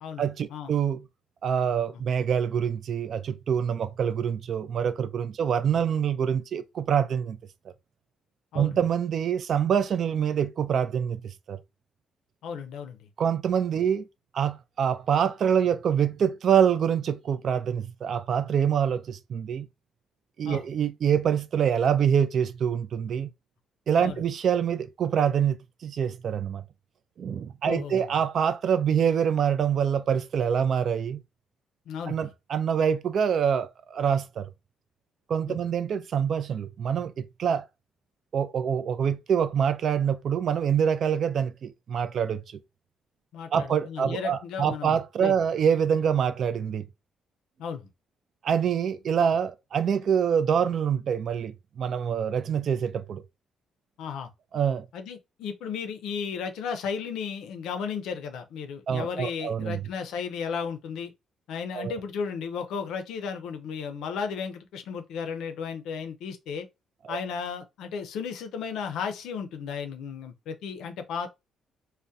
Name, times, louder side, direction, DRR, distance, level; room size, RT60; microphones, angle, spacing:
voice 1, 0.2-1.0 1.4-7.4 8.5-11.6 13.2-14.1 14.3-19.7 20.4-23.3 23.9-26.6 27.2-31.2 32.1-34.5 35.3-37.6 38.3-42.4 43.5-46.8 48.4-53.2 54.5-54.9 58.9-59.8 61.7-61.9 67.1-67.2, right 8 dB, 60° right, 0.3 m, -25 dB
voice 2, 12.4-13.1 20.4-20.7 24.0-24.2 27.6-28.0 31.9-32.3 35.5-35.6 43.3-44.9 45.2-45.4 47.6-47.9 54.0-54.3 54.9-61.1 61.5-66.7 67.1-71.3, left 6 dB, 85° left, 0.4 m, -34 dB
2.3 x 2.1 x 2.6 m
cardioid pair, 90°, 0 cm